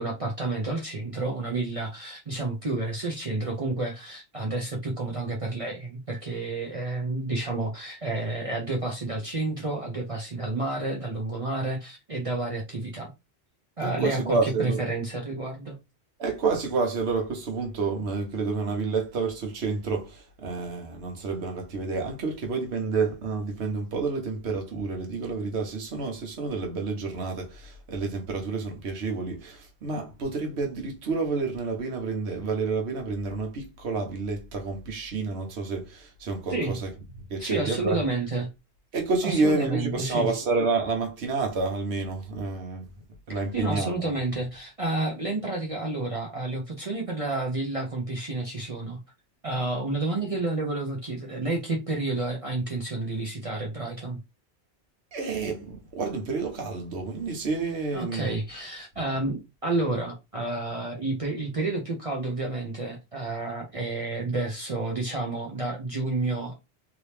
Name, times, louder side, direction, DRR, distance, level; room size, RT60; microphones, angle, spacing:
voice 1, 0.0-13.1 13.8-15.8 36.5-36.8 37.4-38.5 39.2-40.3 43.3-49.0 49.4-54.2 57.9-66.6, right 2 dB, 35° right, 0.7 m, -30 dB
voice 2, 13.8-14.8 16.2-36.9 37.3-38.0 38.9-42.8 43.3-44.1 55.1-58.3, right 4 dB, 75° right, 1.2 m, -29 dB
2.9 x 2.8 x 3.3 m
omnidirectional pair, 1.1 m